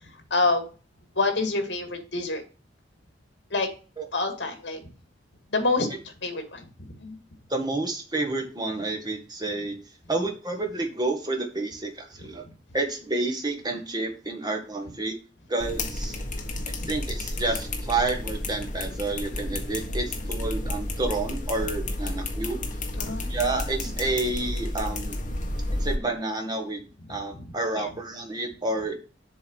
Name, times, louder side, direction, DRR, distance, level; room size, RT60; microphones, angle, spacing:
voice 1, 0.3-0.6 1.2-2.4 3.5-3.7 4.1-4.8 5.5-5.9 6.2-6.7 7.0-7.2 16.8-16.9 23.0-23.8 27.7-27.9, left 3 dB, 75° left, 5 dB, 2.1 m, -27 dB
voice 2, 7.5-9.8 10.1-12.4 12.7-15.1 15.5-16.2 16.7-22.8 23.3-25.2 25.8-26.8 27.1-29.0, right 2 dB, 25° right, 4 dB, 1.5 m, -29 dB
sound 1, 15.6-25.9, left 1 dB, 45° left, 1.4 m, -31 dB
7.2 x 3.7 x 6.3 m, 0.35 s
head